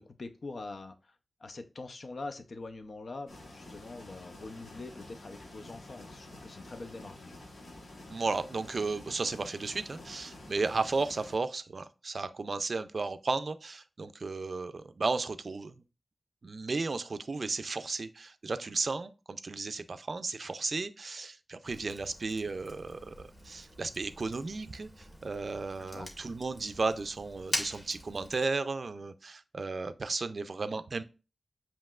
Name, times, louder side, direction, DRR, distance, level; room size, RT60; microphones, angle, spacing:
voice 1, 0.0-7.4 25.9-26.1, left 3 dB, 60° left, 0.6 m, -44 dB
sound 1, 3.3-11.4, left 1 dB, 85° left, 1.2 m, -49 dB
voice 2, 8.1-15.7 16.4-31.0, right 3 dB, 55° right, 0.4 m, -34 dB
Fire, 21.6-28.4, equal, 15° left, 1.4 m, -43 dB
7.5 x 2.9 x 2.4 m
wide cardioid pair, 105°, 0 cm